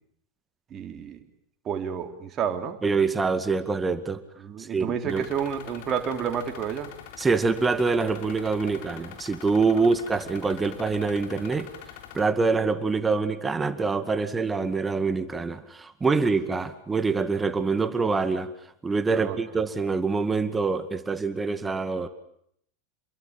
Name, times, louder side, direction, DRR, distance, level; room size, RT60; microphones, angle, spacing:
voice 1, 0.7-1.3 1.7-2.8 4.4-6.9 19.1-19.4, right 8 dB, 30° right, 5 dB, 3.6 m, -30 dB
voice 2, 2.8-4.2 4.6-5.2 7.2-11.7 12.1-18.5 18.8-22.1, right 4 dB, 15° right, 11 dB, 2.0 m, -25 dB
sound 1, 5.1-12.2, left 9 dB, 55° left, 3.7 m, -44 dB
28.5 x 22.5 x 8.9 m, 0.71 s
figure-of-eight pair, 90°, 0 cm